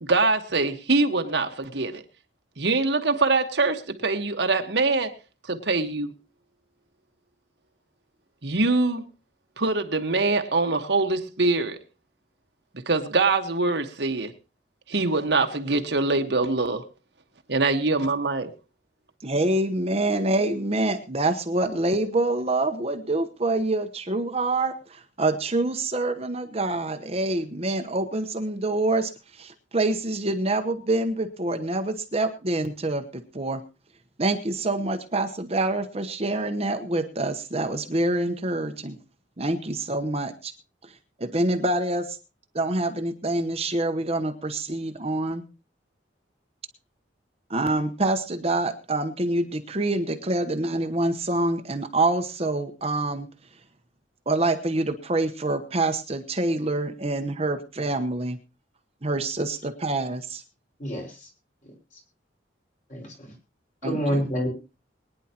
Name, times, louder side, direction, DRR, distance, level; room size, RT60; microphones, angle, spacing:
voice 1, 0.0-2.0 2.6-5.2 5.5-6.1 8.4-9.1 9.6-11.8 12.9-14.3 14.9-16.8 17.5-18.5, right 3 dB, 70° right, 1.4 m, -24 dB
voice 2, 19.2-33.6 34.2-39.0 39.4-40.5 40.8-40.9 41.2-42.2 42.5-45.4 47.5-53.3 54.3-58.4 59.0-60.4 63.8-64.2, right 2 dB, 35° right, 1.1 m, -26 dB
voice 3, 60.8-61.3 61.6-61.7 62.9-63.3 63.8-64.5, equal, 45° left, 5.3 m, -28 dB
22.5 x 10.0 x 3.0 m
head